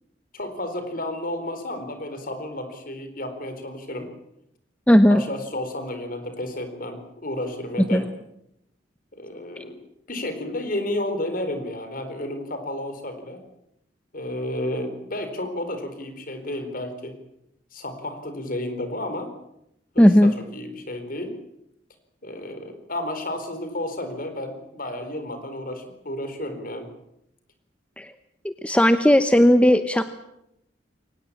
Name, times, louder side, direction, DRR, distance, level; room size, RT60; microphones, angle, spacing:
voice 1, 0.3-4.1 5.1-8.1 9.1-9.8 10.1-13.4 14.1-17.1 17.7-19.3 19.9-21.4 22.2-26.9, left 1 dB, 50° left, 8 dB, 4.3 m, -32 dB
voice 2, 4.9-5.2 7.9-8.0 9.6-9.7 20.0-20.3 28.0-28.1 28.4-30.0, equal, 5° left, 9 dB, 0.9 m, -16 dB
23.0 x 19.0 x 8.7 m, 0.81 s
head